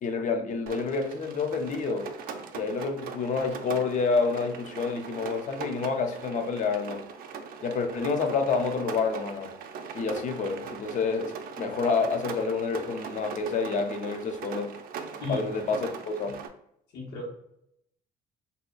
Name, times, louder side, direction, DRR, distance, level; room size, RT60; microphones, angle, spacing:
voice 1, 0.0-2.1 2.5-7.0 7.6-9.5 9.9-14.8 15.3-16.4, left 4 dB, 50° left, 0.6 m, -28 dB
Rain, 0.7-16.5, right 6 dB, 60° right, 0.4 m, -40 dB
voice 2, 16.9-17.3, left 2 dB, 75° left, 1.4 m, -34 dB
2.7 x 2.2 x 3.9 m
cardioid pair, 110°, 17 cm